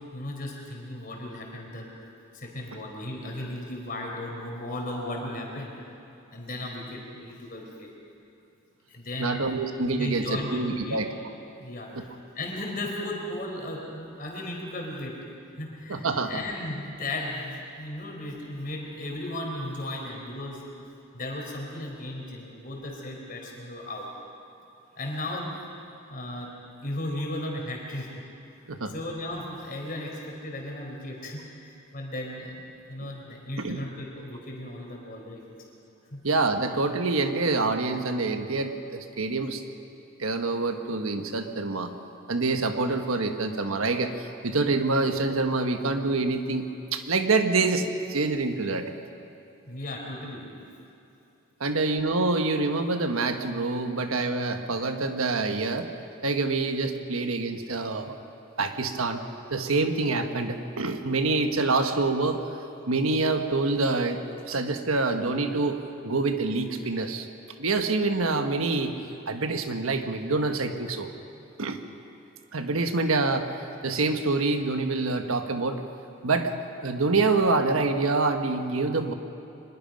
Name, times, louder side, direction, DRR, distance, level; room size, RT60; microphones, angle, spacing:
voice 1, 0.1-1.9 2.3-5.7 6.3-7.9 8.9-9.6 10.0-11.0 11.6-12.1 12.3-15.1 15.6-20.6 21.1-24.1 25.0-25.5 26.1-26.5 26.8-28.1 28.9-32.6 32.9-35.4 36.1-36.2 49.7-50.5, left 1 dB, 40° left, 0 dB, 4.0 m, -35 dB
voice 2, 9.2-11.1 11.9-12.0 15.9-16.4 28.7-28.9 33.6-33.8 36.2-39.6 40.2-41.9 42.3-48.9 51.6-55.9 56.2-58.1 58.6-59.2 59.5-62.4 62.9-67.3 67.6-68.9 69.3-71.1 71.6-71.8 72.5-73.5 73.8-75.8 76.2-76.5 76.8-79.1, right 3 dB, 80° right, 6 dB, 1.3 m, -26 dB
24.0 x 21.0 x 5.3 m, 2.8 s
head